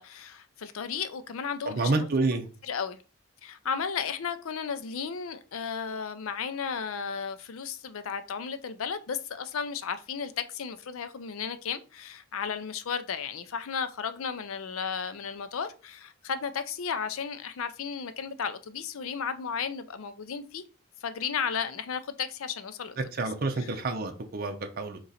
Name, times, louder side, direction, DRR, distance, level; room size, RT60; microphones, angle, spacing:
voice 1, 0.0-2.4 2.7-3.0 3.4-20.6 21.0-23.0 23.6-23.7, left 6 dB, 85° left, 0.5 m, -34 dB
voice 2, 1.7-2.5 23.0-25.0, right 3 dB, 45° right, 0.6 m, -29 dB
3.8 x 3.0 x 4.1 m
head